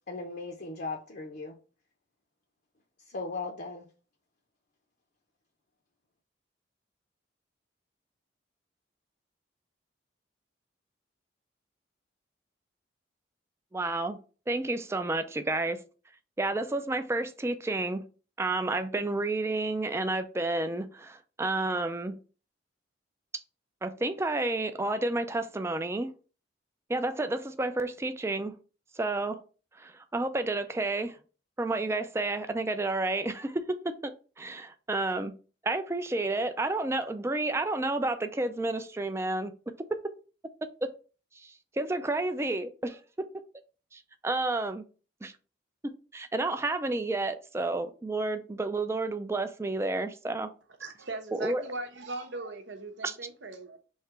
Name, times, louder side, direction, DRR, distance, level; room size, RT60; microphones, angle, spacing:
voice 1, 0.1-1.6 3.1-3.9, left 3 dB, 55° left, 0.6 m, -37 dB
voice 2, 13.7-14.2 14.5-15.8 16.4-18.0 18.4-22.2 23.8-26.1 26.9-28.5 29.0-29.4 29.8-31.2 31.6-34.1 34.4-35.3 35.6-39.5 39.9-40.0 41.4-43.3 43.9-44.8 45.2-45.3 46.1-50.5 51.3-51.6 53.0-53.2, right 2 dB, 15° right, 0.3 m, -30 dB
voice 3, 50.8-53.8, right 2 dB, 75° right, 0.8 m, -39 dB
3.2 x 2.8 x 4.5 m
head